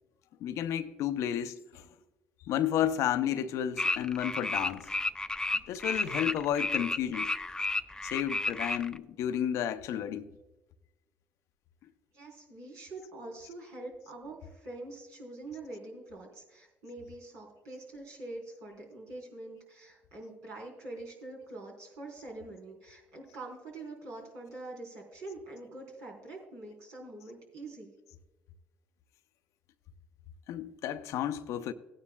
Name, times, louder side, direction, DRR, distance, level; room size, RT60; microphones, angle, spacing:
voice 1, 0.4-1.9 2.5-4.9 5.7-7.3 8.0-10.3 30.5-31.7, left 10 dB, 70° left, 0.6 m, -32 dB
sound 1, 3.8-9.0, left 2 dB, 15° left, 0.5 m, -32 dB
voice 2, 12.1-27.9, right 2 dB, 75° right, 3.5 m, -45 dB
16.5 x 9.8 x 2.2 m
hypercardioid pair, 55°, 5 cm